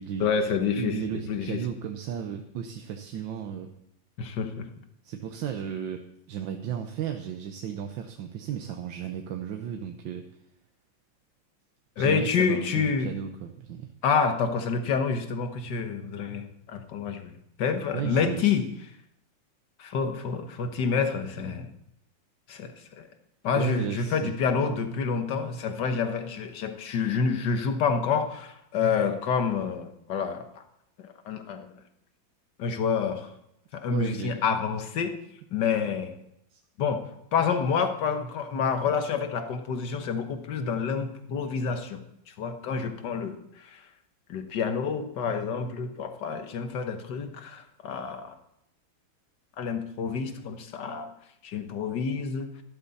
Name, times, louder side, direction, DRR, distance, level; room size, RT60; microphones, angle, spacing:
voice 1, 0.2-1.0 1.3-1.6 4.2-4.7 12.0-13.1 14.0-18.7 19.8-21.7 22.5-23.1 23.4-30.6 31.0-31.7 32.6-33.3 33.7-35.1 35.5-36.1 36.8-37.0 37.3-42.0 42.4-43.4 43.7-43.8 44.3-48.3 49.6-51.1 51.4-52.5, left 6 dB, 65° left, 7 dB, 1.8 m, -28 dB
voice 2, 0.8-3.7 5.0-10.3 12.0-13.9 17.9-18.5 23.6-24.3 33.9-34.3 36.5-36.6, right 9 dB, 75° right, 4 dB, 1.6 m, -34 dB
12.5 x 12.0 x 4.1 m, 0.79 s
omnidirectional pair, 2.1 m